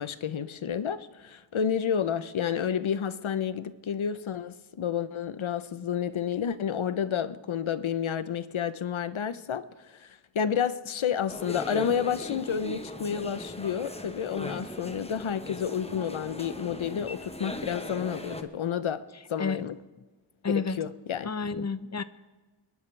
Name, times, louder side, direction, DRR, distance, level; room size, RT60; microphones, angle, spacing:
voice 1, 0.0-19.0 19.3-19.8 20.8-21.7, left 8 dB, 75° left, 14 dB, 0.8 m, -30 dB
sound 1, 11.3-18.4, left 1 dB, 10° left, 1.0 m, -39 dB
voice 2, 20.4-20.8 21.2-22.0, left 4 dB, 35° left, 14 dB, 0.6 m, -30 dB
27.0 x 11.0 x 3.3 m, 1.2 s
wide cardioid pair, 60°, 49 cm